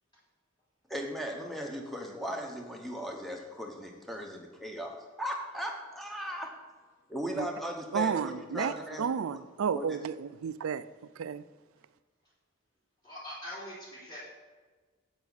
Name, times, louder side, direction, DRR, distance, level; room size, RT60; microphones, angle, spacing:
voice 1, 0.9-6.5 7.1-9.1 9.3-9.4 9.7-9.8, equal, ahead, 1.0 m, -37 dB
voice 2, 7.9-10.8 11.2-11.4, right 6 dB, 75° right, 0.4 m, -32 dB
voice 3, 13.0-14.2, equal, 20° left, 3.4 m, -42 dB
9.4 x 8.2 x 4.1 m
head